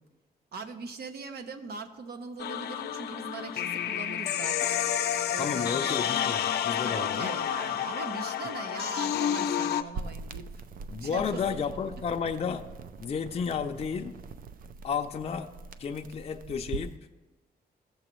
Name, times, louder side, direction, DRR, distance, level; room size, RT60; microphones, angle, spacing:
voice 1, 0.5-4.8 5.3-6.0 6.6-10.7 11.0-11.6, right 5 dB, 80° right, 7 dB, 0.9 m, -40 dB
sound 1, 2.4-9.8, left 10 dB, 85° left, 0.5 m, -30 dB
voice 2, 5.4-7.4 10.9-12.6 13.0-14.2 14.8-15.5 15.8-16.9, left 6 dB, 40° left, 4 dB, 0.5 m, -32 dB
sound 2, 9.9-17.0, right 4 dB, 60° right, 0.4 m, -42 dB
15.0 x 7.0 x 3.0 m, 1.2 s
wide cardioid pair, 140°, 16 cm